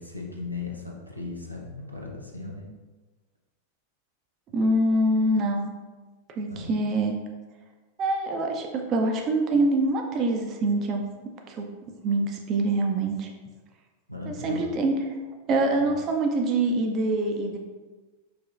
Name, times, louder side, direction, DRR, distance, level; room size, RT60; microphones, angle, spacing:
voice 1, 0.0-2.7 6.5-6.7 14.1-14.8 15.8-15.9, left 3 dB, 90° right, -1 dB, 0.6 m, -37 dB
voice 2, 4.5-5.7 6.3-7.1 8.0-11.1 11.5-11.7 12.0-13.3 14.3-15.0 15.5-17.6, right 2 dB, 35° right, 3 dB, 0.5 m, -25 dB
4.8 x 2.9 x 2.4 m, 1.3 s
figure-of-eight pair, 90°, 0 cm